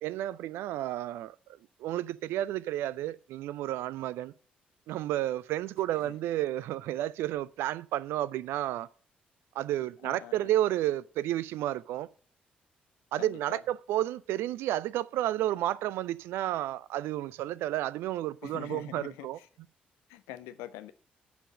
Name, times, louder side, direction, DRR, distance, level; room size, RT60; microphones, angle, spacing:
voice 1, 0.0-4.3 4.9-8.9 9.5-12.1 13.1-19.4, right 13 dB, 60° right, 0.4 m, -31 dB
voice 2, 10.0-10.3 13.2-13.6 18.4-19.5 20.1-20.9, left 13 dB, 65° left, 0.7 m, -44 dB
9.8 x 5.3 x 7.4 m
figure-of-eight pair, 40°, 5 cm